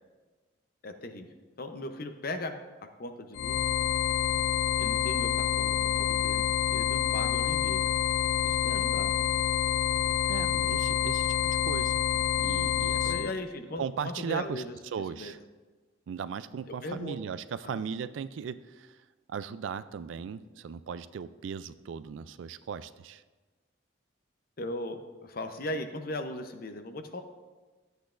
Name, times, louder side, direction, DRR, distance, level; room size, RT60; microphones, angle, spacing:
voice 1, 0.8-1.3 1.6-2.6 3.0-3.6 4.8-7.8 8.4-9.1 13.0-14.7 15.2-15.3 16.7-17.2 17.6-17.8 24.6-27.2, left 1 dB, 50° left, 7 dB, 0.7 m, -38 dB
sound 1, 3.3-13.3, left 10 dB, 80° left, 0.4 m, -27 dB
voice 2, 10.3-12.0 12.4-13.3 13.8-15.4 16.1-23.2, right 6 dB, 75° right, 14 dB, 0.3 m, -37 dB
12.5 x 8.0 x 2.5 m, 1.3 s
head